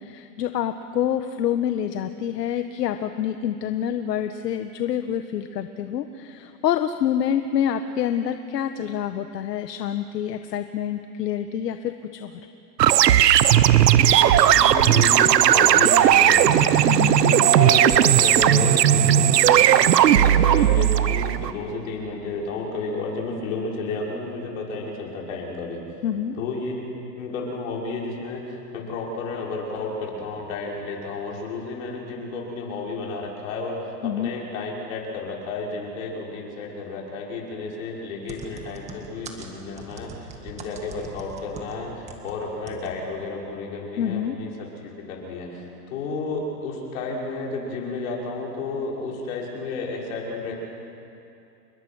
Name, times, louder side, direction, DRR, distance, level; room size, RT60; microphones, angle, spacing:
voice 1, 0.0-12.3 16.9-17.2 26.0-26.4 34.0-34.3 44.0-44.3, left 9 dB, 75° left, 8 dB, 1.4 m, -27 dB
sound 1, 12.8-21.5, right 11 dB, 75° right, 1.2 m, -16 dB
voice 2, 14.0-16.6 17.2-25.8 26.3-26.8 27.2-50.5, left 3 dB, 50° left, -2 dB, 6.4 m, -32 dB
sound 2, 38.3-42.3 42.7-42.9 43.2-43.3, right 4 dB, 15° right, 1.8 m, -41 dB
29.5 x 21.5 x 6.4 m, 2.7 s
supercardioid pair, 160°, 50 cm